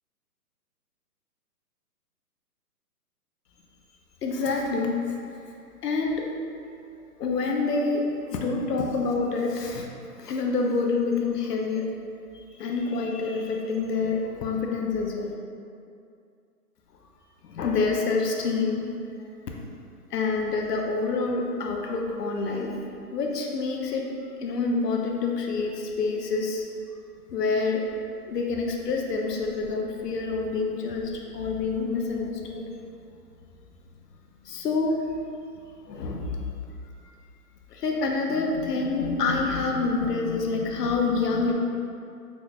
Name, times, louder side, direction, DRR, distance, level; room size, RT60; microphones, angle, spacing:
voice 1, 4.2-5.1 5.8-6.3 7.2-8.0 8.3-9.9 10.2-11.9 12.3-15.3 17.4-18.8 20.1-22.8 23.1-24.1 24.4-26.7 27.3-27.8 28.3-32.7 34.4-35.0 35.9-36.4 37.7-41.5, left 4 dB, 75° left, 0 dB, 0.6 m, -27 dB
4.2 x 2.9 x 2.2 m, 2.5 s
hypercardioid pair, 160°, 48 cm